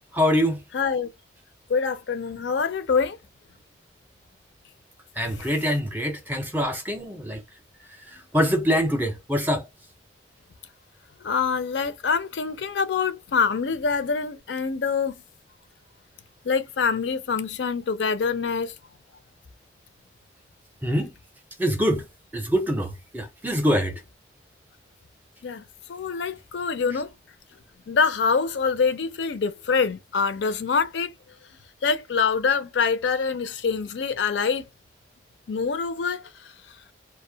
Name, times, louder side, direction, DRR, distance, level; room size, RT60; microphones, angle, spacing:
voice 1, 0.1-0.6 5.2-7.4 8.3-9.6 20.8-21.1 21.6-22.0 22.3-23.9, equal, 10° right, 0.5 m, -24 dB
voice 2, 0.7-1.1 1.7-3.2 11.2-15.1 16.4-18.7 25.4-25.6 25.9-27.1 27.9-31.1 31.8-34.7 35.5-36.2, left 5 dB, 75° left, 0.4 m, -25 dB
2.5 x 2.1 x 2.6 m
head